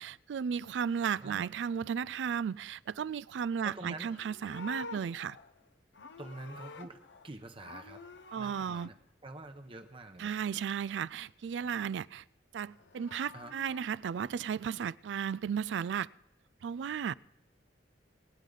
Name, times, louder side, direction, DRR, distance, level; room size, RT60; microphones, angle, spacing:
voice 1, 0.0-5.4 8.3-8.9 10.2-12.2 12.5-16.1 16.6-17.1, right 7 dB, 80° right, 0.3 m, -34 dB
voice 2, 3.6-4.1 6.2-7.0 7.2-8.0 8.4-8.9 9.2-10.3 13.3-13.5, right 2 dB, 30° right, 0.9 m, -46 dB
Livestock farm animals working animals, 3.9-7.3 7.6-8.9 12.7-13.9, left 3 dB, 80° left, 0.8 m, -48 dB
21.0 x 9.2 x 3.9 m
head